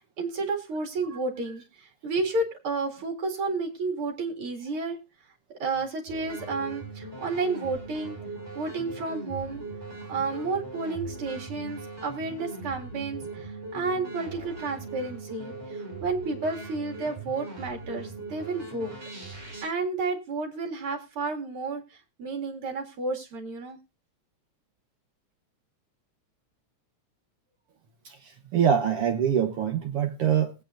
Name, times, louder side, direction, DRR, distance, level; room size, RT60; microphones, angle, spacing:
voice 1, 0.0-5.0 5.6-8.2 8.5-9.6 10.1-18.9 19.6-21.8 22.2-23.8, right 3 dB, 50° right, 3.0 m, -31 dB
sound 1, 6.1-19.6, right 3 dB, 20° right, 5.8 m, -40 dB
voice 2, 28.0-30.5, right 8 dB, 65° right, 1.5 m, -24 dB
20.0 x 9.1 x 2.5 m
omnidirectional pair, 3.4 m